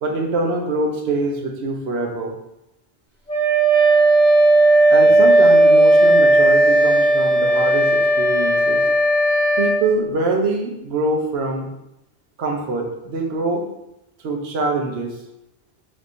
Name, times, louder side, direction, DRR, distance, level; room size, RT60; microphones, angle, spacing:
voice 1, 0.0-2.3 4.9-8.8 9.6-11.7 12.4-13.7 14.2-15.2, right 3 dB, 70° right, 1 dB, 1.0 m, -24 dB
Wind instrument woodwind instrument, 3.3-9.8, right 1 dB, 40° left, 1.1 m, -14 dB
4.0 x 3.5 x 2.5 m, 0.87 s
omnidirectional pair, 1.1 m